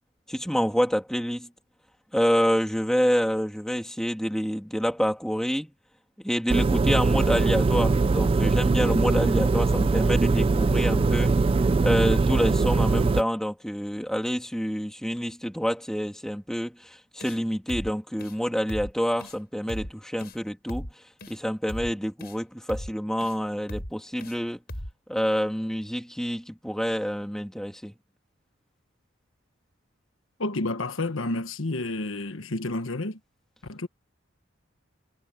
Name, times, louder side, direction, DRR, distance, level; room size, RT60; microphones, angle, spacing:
voice 1, 0.3-1.5 2.1-5.7 6.2-11.4 11.8-20.9 21.3-24.6 25.1-27.9, equal, 5° left, 2.9 m, -27 dB
sound 1, 6.5-13.2, right 3 dB, 30° right, 0.3 m, -22 dB
sound 2, 17.2-17.4 17.7-17.9 18.2-18.4 18.7-18.9 19.2-19.4 19.7-19.9 20.2-20.4 20.7-20.9 21.2-21.4 21.7-21.9 22.2-22.4 22.7-22.9 23.2-23.4 23.7-23.9 24.2-24.4 24.7-24.9, equal, 50° left, 7.6 m, -37 dB
voice 2, 30.4-33.2 33.6-33.9, left 2 dB, 85° left, 1.3 m, -30 dB
head